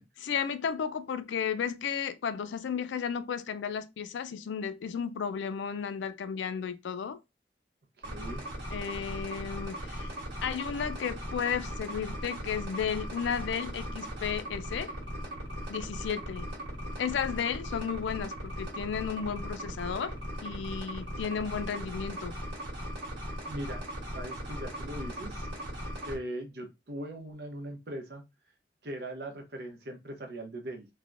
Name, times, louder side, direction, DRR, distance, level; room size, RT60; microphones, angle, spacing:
voice 1, 0.2-7.2 8.7-10.1 10.4-15.0 15.7-16.5 17.0-20.2 20.4-22.4, left 7 dB, 85° left, 0.4 m, -33 dB
voice 2, 8.0-8.4 23.5-25.5 26.0-28.2 28.8-30.9, right 1 dB, 60° right, 0.7 m, -40 dB
sound 1, 8.0-26.2, equal, 90° right, 1.2 m, -38 dB
3.2 x 2.1 x 2.5 m
head